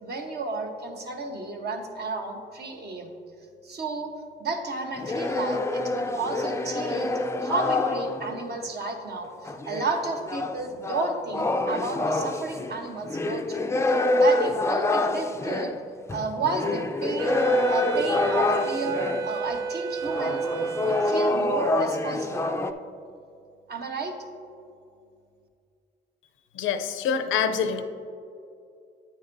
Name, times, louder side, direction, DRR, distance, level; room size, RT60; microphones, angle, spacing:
voice 1, 0.0-3.1 3.6-4.1 4.4-15.7 16.1-17.4 17.7-22.5 23.7-24.1, right 3 dB, 55° right, 3 dB, 1.1 m, -32 dB
sound 1, 5.0-8.5 9.4-19.4 20.0-22.7, left 2 dB, 15° left, 0.4 m, -26 dB
Wind instrument woodwind instrument, 17.2-21.7, right 7 dB, 75° right, 0.5 m, -32 dB
voice 2, 26.5-27.8, left 7 dB, 90° left, 9 dB, 0.6 m, -26 dB
9.2 x 8.6 x 2.6 m, 2.5 s
cardioid pair, 90°, 20 cm